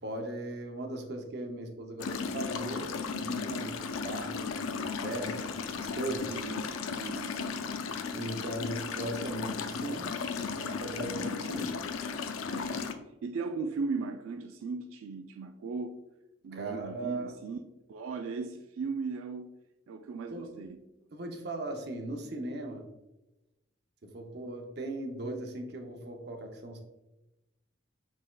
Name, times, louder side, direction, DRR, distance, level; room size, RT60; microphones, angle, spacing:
voice 1, 0.0-2.9 3.2-6.4 8.1-11.8 16.5-17.4 20.3-20.5 21.1-22.9 24.0-26.8, right 2 dB, 50° right, 3 dB, 0.6 m, -38 dB
sound 1, 2.0-12.9, left 5 dB, 85° left, 0.4 m, -35 dB
voice 2, 6.3-7.4 10.9-11.5 12.5-12.8 13.2-15.9 16.4-17.6 17.9-19.5 19.9-20.8, right 4 dB, 85° right, 6 dB, 0.3 m, -37 dB
6.3 x 3.5 x 2.3 m, 0.97 s
head